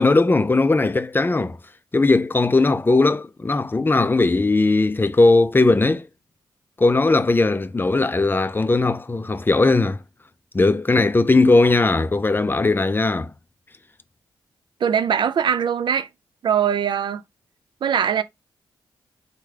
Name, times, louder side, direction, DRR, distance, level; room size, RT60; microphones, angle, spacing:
voice 1, 0.0-1.6 1.9-6.1 6.8-10.0 10.5-13.3, left 3 dB, 25° left, 0.4 m, -18 dB
voice 2, 14.8-16.1 16.4-17.2 17.8-18.2, right 8 dB, 60° right, 0.4 m, -21 dB
3.4 x 2.2 x 3.2 m
supercardioid pair, 40°, 9 cm